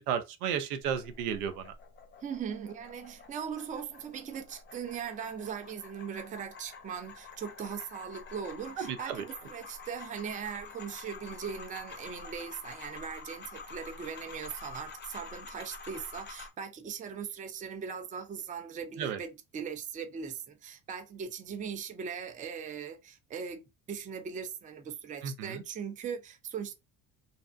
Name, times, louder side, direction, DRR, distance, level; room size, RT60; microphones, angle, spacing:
voice 1, 0.1-1.7 8.8-9.2 19.0-19.2 25.2-25.6, right 8 dB, 80° right, 0.6 m, -33 dB
sound 1, 0.8-16.5, left 4 dB, 25° left, 0.6 m, -48 dB
voice 2, 2.2-26.7, right 7 dB, 20° right, 0.4 m, -39 dB
2.6 x 2.0 x 2.4 m
hypercardioid pair, 65°, 44 cm